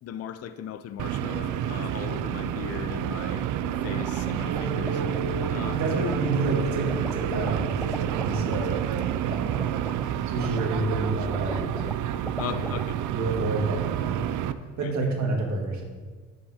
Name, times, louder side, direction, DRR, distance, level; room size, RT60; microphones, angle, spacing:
voice 1, 0.0-5.0 5.5-5.8 12.4-13.0 14.8-14.9, left 9 dB, 55° left, 11 dB, 0.5 m, -38 dB
sound 1, 1.0-14.5, right 11 dB, 85° right, 0.5 m, -29 dB
sound 2, 3.7-12.8, left 1 dB, 5° left, 0.4 m, -41 dB
sound 3, 4.4-9.1, left 1 dB, 25° left, 1.9 m, -37 dB
voice 2, 5.6-8.9 9.2-9.7 10.2-11.9 12.4-12.6 13.1-14.3 14.8-15.9, right 2 dB, 65° right, 0 dB, 2.0 m, -29 dB
11.0 x 9.0 x 2.8 m, 1.5 s
cardioid pair, 90°, 30 cm